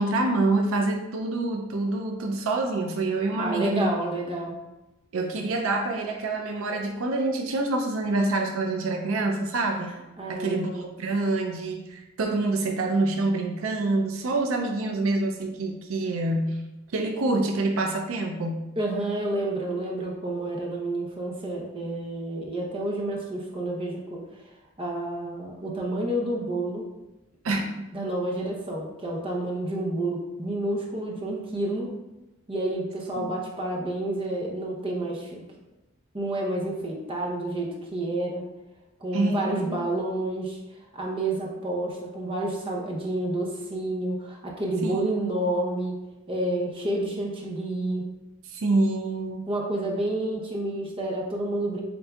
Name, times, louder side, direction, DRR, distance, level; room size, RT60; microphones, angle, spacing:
voice 1, 0.0-3.9 5.1-9.9 10.3-16.6 16.9-18.6 27.4-27.9 33.2-33.3 39.1-39.8 44.8-45.3 48.5-49.5, right 2 dB, 75° right, 3 dB, 0.5 m, -26 dB
voice 2, 3.3-4.5 10.2-10.8 18.8-24.5 24.8-26.8 27.5-27.6 27.9-31.9 32.5-35.4 36.1-38.4 39.0-40.6 40.9-46.0 46.3-48.0 49.5-51.8, right 1 dB, 25° right, -2 dB, 0.7 m, -29 dB
7.6 x 2.7 x 2.3 m, 1.0 s
head